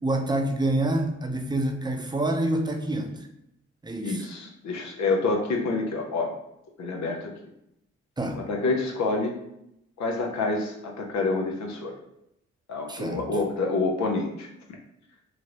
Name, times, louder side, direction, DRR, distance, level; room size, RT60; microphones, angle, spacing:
voice 1, 0.0-3.3 3.8-4.3 8.2-8.4 12.9-13.3, right 1 dB, 15° right, 4 dB, 0.6 m, -27 dB
voice 2, 4.0-6.3 6.8-7.3 8.4-9.3 10.0-11.9 12.7-14.5, left 3 dB, 70° left, 1 dB, 0.6 m, -27 dB
3.0 x 2.5 x 2.8 m, 0.81 s
supercardioid pair, 45°, 29 cm